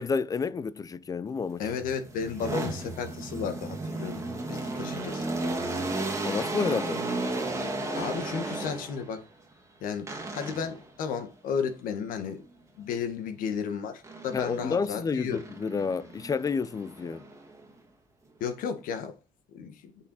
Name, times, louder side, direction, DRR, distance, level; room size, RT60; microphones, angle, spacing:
voice 1, 0.0-1.6 6.2-7.0 14.3-17.3, left 5 dB, 25° left, 0.5 m, -30 dB
sound 1, 1.5-9.2 10.1-10.9 14.0-14.9 15.3-17.7, right 2 dB, 20° right, 1.8 m, -34 dB
voice 2, 1.6-5.2 8.0-9.2 9.8-12.4 12.8-15.4 18.4-19.1 19.5-19.9, left 6 dB, 80° left, 1.6 m, -33 dB
6.7 x 5.8 x 4.2 m
cardioid pair, 125°, 14 cm